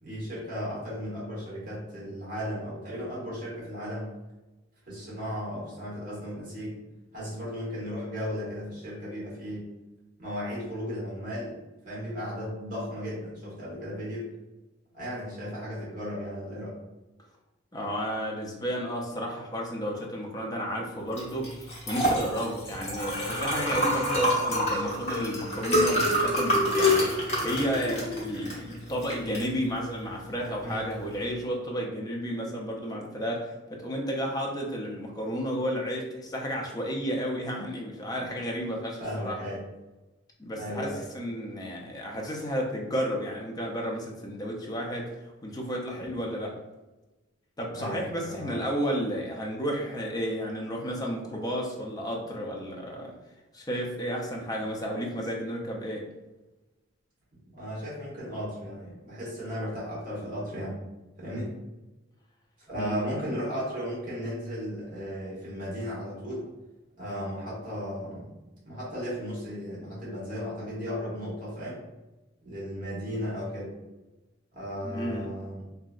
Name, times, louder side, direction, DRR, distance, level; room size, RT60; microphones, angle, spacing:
voice 1, 0.0-4.1 4.9-6.8 7.1-9.7 10.2-14.3 14.9-16.7 25.9-26.1 30.6-30.9 39.0-39.6 40.6-41.0 46.2-46.3 47.7-48.6 57.3-60.8 61.2-61.6 62.6-66.5 67.0-71.8 72.4-73.8 74.5-75.6, equal, 45° right, -7 dB, 1.3 m, -35 dB
voice 2, 17.7-27.1 27.4-39.4 40.4-46.6 47.6-53.1 53.5-56.1 62.8-63.1 74.8-75.3, equal, 20° left, -1 dB, 0.5 m, -32 dB
Liquid, 21.1-31.3, left 1 dB, 35° left, 0.9 m, -27 dB
2.9 x 2.6 x 2.4 m, 1.1 s
head